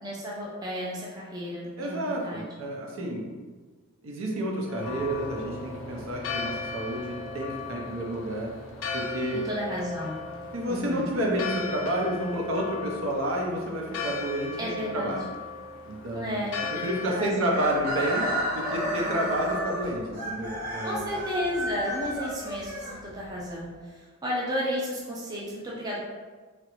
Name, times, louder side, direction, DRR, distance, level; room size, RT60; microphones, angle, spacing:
voice 1, 0.0-2.4 9.3-10.2 10.7-11.1 14.6-15.2 16.1-16.5 17.1-17.7 20.8-26.0, equal, 20° right, -5 dB, 0.4 m, -33 dB
voice 2, 1.8-3.3 4.0-8.5 8.9-9.4 10.5-14.6 14.9-15.2 15.8-16.4 16.7-21.2, right 1 dB, 70° right, -1 dB, 0.6 m, -30 dB
Church bell, 4.7-17.1, left 4 dB, 60° left, 0.4 m, -37 dB
sound 1, 4.8-19.7, equal, 90° right, 1.0 m, -47 dB
Chicken rooster, 17.5-23.4, equal, 45° right, 0.9 m, -32 dB
3.0 x 2.5 x 2.9 m, 1.4 s
head